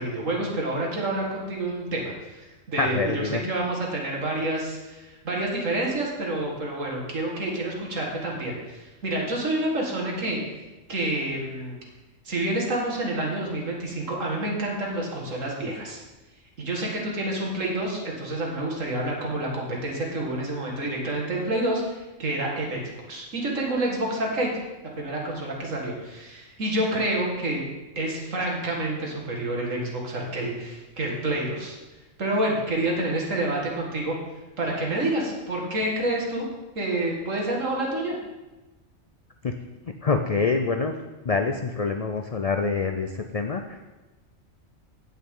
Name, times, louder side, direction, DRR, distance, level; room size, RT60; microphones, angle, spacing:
voice 1, 0.0-10.4 10.9-11.8 12.2-16.0 16.6-22.8 23.1-24.5 25.0-27.6 28.0-31.8 32.2-34.2 34.6-36.5 36.8-38.2, right 1 dB, 70° right, -1 dB, 2.2 m, -28 dB
voice 2, 2.8-3.4 39.4-39.6 39.9-41.0 41.2-43.8, left 4 dB, 65° left, 5 dB, 0.3 m, -26 dB
16.5 x 5.7 x 3.8 m, 1.1 s
omnidirectional pair, 1.4 m